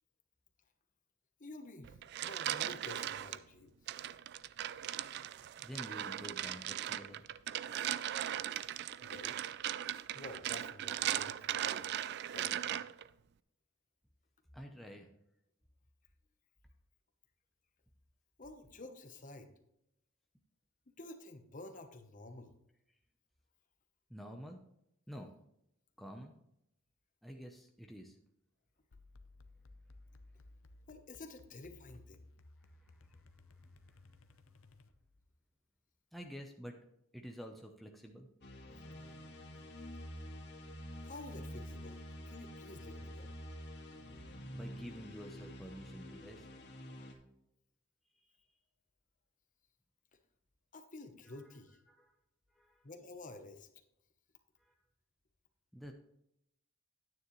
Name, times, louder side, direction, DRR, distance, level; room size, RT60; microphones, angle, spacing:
voice 1, 1.4-3.7 9.0-9.4 10.1-11.9 12.3-12.8 18.4-19.5 20.9-22.5 30.9-32.3 41.0-42.0 42.3-43.3 50.7-51.8 52.8-53.7, left 2 dB, 40° left, 7 dB, 0.9 m, -51 dB
sound 1, 1.8-3.4 3.9-13.1, right 11 dB, 50° right, 0.3 m, -38 dB
voice 2, 5.6-7.2 14.5-15.1 24.1-24.6 25.1-25.3 26.0-26.3 27.2-28.2 32.6-33.2 33.5-34.2 36.1-36.8 37.1-38.3 44.5-46.5 51.3-51.4 51.9-52.1 52.5-52.8 54.6-54.7 55.7-55.9, equal, ahead, 2 dB, 0.7 m, -49 dB
sound 2, 28.9-35.3, left 2 dB, 75° left, 0.7 m, -59 dB
sound 3, 38.4-47.1, equal, 55° left, 2.0 m, -48 dB
9.8 x 9.3 x 3.1 m, 0.80 s
head